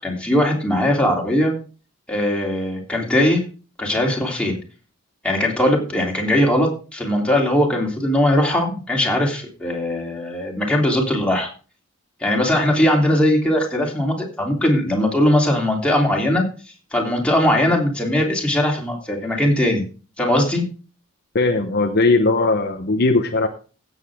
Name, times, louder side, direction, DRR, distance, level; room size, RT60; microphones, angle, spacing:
voice 1, 0.0-1.6 2.1-3.4 3.8-4.6 5.2-11.5 12.2-16.4 16.9-19.8 20.2-20.6, left 1 dB, 5° left, -1 dB, 3.3 m, -20 dB
voice 2, 21.3-23.5, left 3 dB, 50° left, 6 dB, 0.9 m, -18 dB
16.5 x 8.1 x 3.6 m, 0.35 s
head